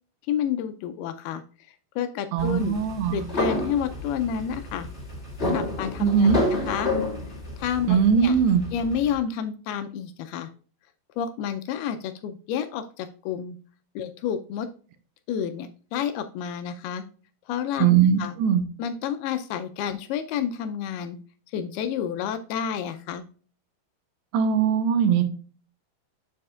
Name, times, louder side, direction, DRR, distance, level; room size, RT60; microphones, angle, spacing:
voice 1, 0.2-1.4 2.0-2.8 3.1-4.9 5.5-6.9 7.6-8.4 8.7-10.5 11.2-13.6 14.0-14.7 15.3-17.0 17.5-18.4 18.8-21.2 21.5-23.2, left 8 dB, 80° left, 9 dB, 2.3 m, -30 dB
voice 2, 2.3-3.2 6.0-6.4 7.9-8.6 17.8-18.6 24.3-25.2, right 7 dB, 85° right, 8 dB, 2.7 m, -20 dB
sound 1, 2.4-9.2, left 1 dB, 25° left, 1.6 m, -30 dB
7.5 x 6.8 x 2.4 m, 0.40 s
omnidirectional pair, 4.8 m